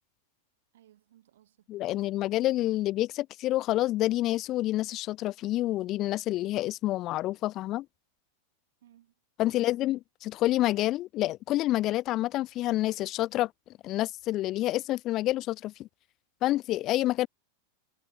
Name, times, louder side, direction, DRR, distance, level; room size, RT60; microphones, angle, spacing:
voice 1, 0.7-2.2 8.8-9.1 9.4-9.9, right 12 dB, 60° right, 4.3 m, -62 dB
voice 2, 1.7-7.9 9.4-13.5 13.8-15.9 16.4-17.3, left 15 dB, 35° left, 0.3 m, -28 dB
figure-of-eight pair, 90°, 0 cm